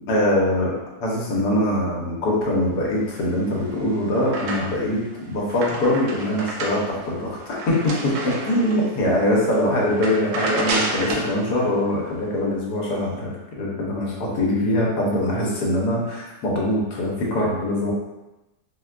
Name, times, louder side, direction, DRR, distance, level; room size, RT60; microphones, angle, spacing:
voice 1, 0.1-5.0 5.3-17.9, left 1 dB, 80° left, -3 dB, 1.4 m, -23 dB
sound 1, 3.4-5.0 5.3-8.9 9.4-9.5 9.9-11.3, right 2 dB, 75° right, 1.1 m, -30 dB
4.3 x 2.2 x 2.4 m, 1.0 s
omnidirectional pair, 1.7 m